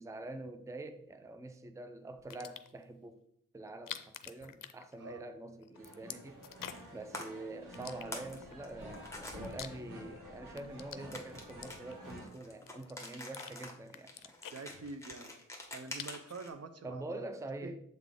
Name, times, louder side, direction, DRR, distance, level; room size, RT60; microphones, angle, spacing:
voice 1, 0.0-3.2 3.5-6.4 6.9-14.3 16.8-17.8, right 2 dB, 10° right, 0.5 m, -45 dB
sound 1, 2.2-2.8 3.7-5.3 5.6-7.0 7.7-8.5 9.1-10.2 10.5-12.2 12.7-13.5 13.9-15.2 15.5-16.4, left 9 dB, 85° left, 0.5 m, -48 dB
sound 2, 5.7-12.3, equal, 80° right, 2.0 m, -50 dB
sound 3, 6.5-6.9 7.1-7.2 7.8-8.4 8.6-9.4 11.1-16.5, left 1 dB, 10° left, 1.3 m, -46 dB
voice 2, 14.5-15.3 15.7-17.0 17.6-17.7, right 3 dB, 50° right, 0.6 m, -46 dB
7.5 x 3.7 x 3.6 m
cardioid pair, 55°, 32 cm